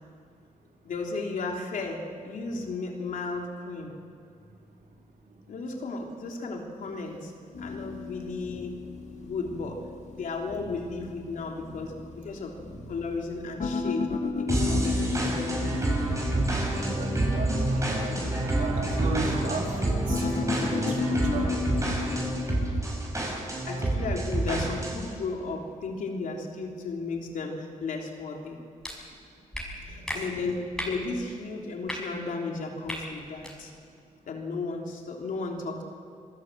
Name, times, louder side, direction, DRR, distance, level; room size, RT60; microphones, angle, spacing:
voice 1, 0.8-4.0 5.5-7.3 7.6-8.8 9.2-9.9 10.1-12.6 12.9-14.1 14.4-15.4 23.7-28.6 29.9-33.7 34.3-35.8, left 3 dB, 80° left, 1 dB, 3.5 m, -34 dB
sound 1, 7.5-22.8, left 4 dB, 55° left, 2.3 m, -34 dB
sound 2, 14.5-25.1, right 2 dB, 25° right, 6.5 m, -28 dB
voice 2, 16.7-18.2 18.6-21.7 29.8-30.3, right 2 dB, 80° right, 0 dB, 4.3 m, -34 dB
sound 3, 28.8-28.9 29.5-29.6 30.1-30.2 30.7-30.9 31.8-32.0 32.8-33.0 33.4-33.5, equal, 5° left, 5.9 m, -34 dB
26.5 x 19.0 x 8.0 m, 2.4 s
cardioid pair, 105°, 14 cm